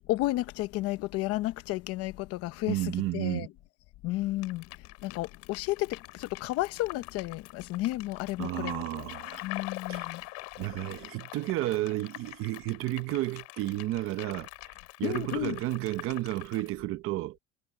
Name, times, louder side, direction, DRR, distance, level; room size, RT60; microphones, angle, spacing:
voice 1, 0.1-3.5 4.0-4.6 5.0-9.0 9.4-10.2 15.0-15.6, left 17 dB, 50° left, 0.8 m, -32 dB
voice 2, 2.7-3.5 8.4-9.4 9.9-10.1 10.6-14.5 15.0-17.4, right 16 dB, 45° right, 0.8 m, -32 dB
sound 1, 4.4-16.7, left 26 dB, 90° left, 2.4 m, -44 dB
cardioid pair, 175°, 30 cm